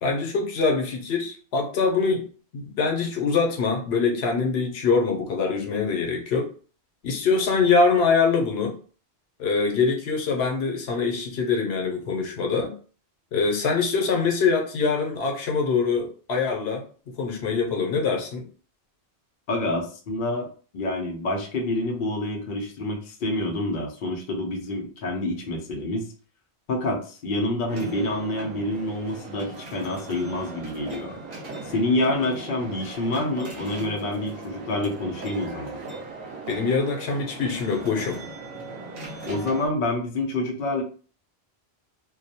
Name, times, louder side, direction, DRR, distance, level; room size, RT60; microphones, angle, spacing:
voice 1, 0.0-2.3 2.5-6.5 7.0-8.7 9.4-12.7 13.3-16.8 17.2-18.4 36.5-38.2, left 4 dB, 85° left, 2 dB, 0.9 m, -24 dB
voice 2, 19.5-20.5 20.7-26.1 26.7-31.2 31.7-35.8 39.3-40.8, left 1 dB, 60° left, 1 dB, 0.7 m, -27 dB
sound 1, 27.7-39.7, right 2 dB, 65° right, 0.9 m, -38 dB
2.2 x 2.1 x 2.7 m, 0.39 s
omnidirectional pair, 1.1 m